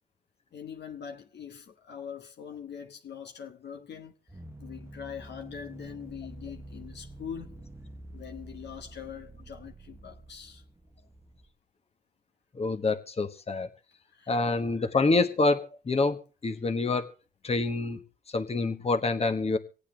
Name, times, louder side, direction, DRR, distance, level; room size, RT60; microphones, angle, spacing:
voice 1, 0.5-4.1 4.6-7.7 8.1-10.6 14.1-14.3, left 8 dB, 60° left, 1.2 m, -43 dB
sound 1, 4.3-11.5, right 1 dB, 10° right, 0.9 m, -47 dB
voice 2, 12.5-13.7 14.3-17.1 17.4-18.0 18.3-19.6, left 3 dB, 30° left, 1.2 m, -27 dB
25.0 x 8.4 x 3.3 m
supercardioid pair, 65°, 20 cm